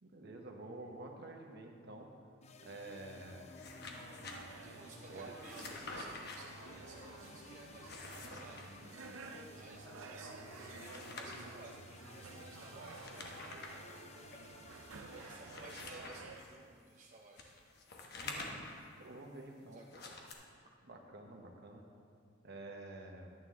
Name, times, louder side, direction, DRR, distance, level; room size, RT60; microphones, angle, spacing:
voice 1, 0.0-2.1 2.6-3.5 5.1-5.3 18.2-18.7 19.0-19.8 20.8-21.8 22.4-23.3, right 2 dB, 55° right, 1 dB, 1.1 m, -49 dB
sound 1, 2.4-15.9, left 3 dB, 35° left, 0.5 m, -56 dB
sound 2, 3.3-4.4 5.3-6.4 7.7-8.7 10.4-11.5 12.8-13.8 14.3-14.4 15.1-16.5 17.4-18.8 19.9-20.3, left 3 dB, 55° left, 1.0 m, -48 dB
sound 3, 3.8-16.4, right 3 dB, 85° right, 0.6 m, -52 dB
voice 2, 4.6-13.9 15.0-17.5 19.7-20.1, right 2 dB, 40° right, -1 dB, 0.6 m, -57 dB
11.0 x 8.7 x 3.7 m, 2.4 s
head